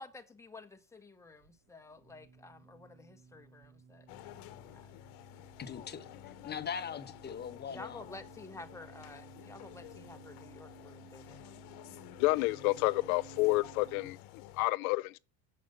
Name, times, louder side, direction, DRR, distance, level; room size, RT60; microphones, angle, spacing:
voice 1, 0.0-4.9 7.7-11.4, left 2 dB, 5° left, 1.3 m, -51 dB
sound 1, 1.3-14.1, right 10 dB, 70° right, 2.2 m, -58 dB
sound 2, 4.1-14.7, left 14 dB, 65° left, 1.1 m, -51 dB
voice 2, 5.6-6.1 6.4-8.0, left 7 dB, 25° left, 1.1 m, -40 dB
voice 3, 12.2-14.2 14.6-15.2, left 23 dB, 80° left, 0.6 m, -29 dB
7.5 x 6.8 x 7.0 m
supercardioid pair, 120°, 43 cm